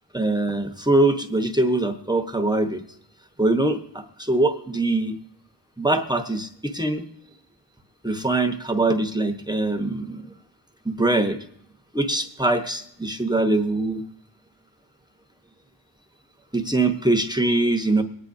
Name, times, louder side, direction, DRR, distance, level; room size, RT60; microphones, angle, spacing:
voice 1, 0.1-2.8 3.4-5.1 5.8-7.0 8.0-10.2 10.8-11.4 11.9-14.0 16.5-18.0, right 2 dB, 10° right, 6 dB, 0.9 m, -23 dB
23.5 x 9.6 x 2.6 m, 0.69 s
wide cardioid pair, 65°, 42 cm